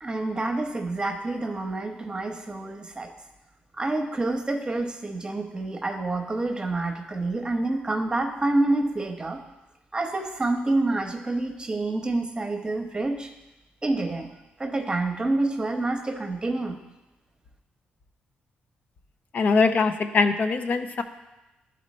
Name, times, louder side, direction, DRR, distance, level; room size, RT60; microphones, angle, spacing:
voice 1, 0.0-3.1 3.8-9.4 9.9-13.3 13.8-14.3 14.6-16.8, right 2 dB, 25° right, 4 dB, 0.9 m, -27 dB
voice 2, 19.3-21.0, left 4 dB, 55° left, 8 dB, 0.5 m, -22 dB
11.0 x 4.2 x 4.2 m, 1.0 s
cardioid pair, 85°, 3 cm